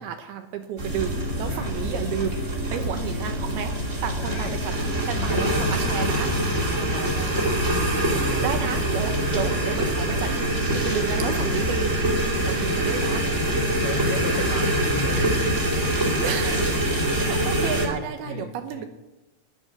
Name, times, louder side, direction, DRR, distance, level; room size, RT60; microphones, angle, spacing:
voice 1, 0.0-4.8 5.1-6.3 8.4-13.3 16.2-16.7 17.2-18.8, right 8 dB, 75° right, 7 dB, 2.6 m, -32 dB
sound 1, 0.8-17.9, right 1 dB, 25° right, 2.0 m, -24 dB
voice 2, 4.2-4.6 4.9-5.7 6.7-7.5 8.1-8.6 9.2-9.5 13.4-15.7 16.2-16.4 18.2-18.8, left 4 dB, 70° left, 3 dB, 2.2 m, -35 dB
10.5 x 10.5 x 9.9 m, 1.0 s
omnidirectional pair, 5.1 m